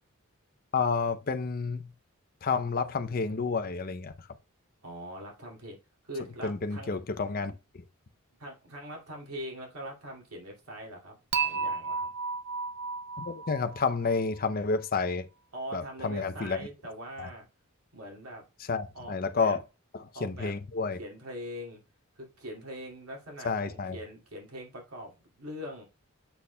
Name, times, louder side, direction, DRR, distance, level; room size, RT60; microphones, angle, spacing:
voice 1, 0.7-1.9 2.4-4.3 6.4-7.8 13.2-15.3 15.7-16.6 17.2-17.3 18.7-19.6 19.9-21.0 23.4-24.0, left 4 dB, 45° left, 0.6 m, -30 dB
voice 2, 4.8-5.8 6.0-7.0 8.4-12.1 15.5-17.5 17.9-18.4 18.9-19.6 20.1-20.6 21.0-21.8 22.2-25.8, equal, 85° right, 2.5 m, -42 dB
Dishes pots and pans / Chink clink, 11.3-14.5, right 5 dB, 50° right, 0.6 m, -33 dB
7.0 x 6.3 x 2.2 m
head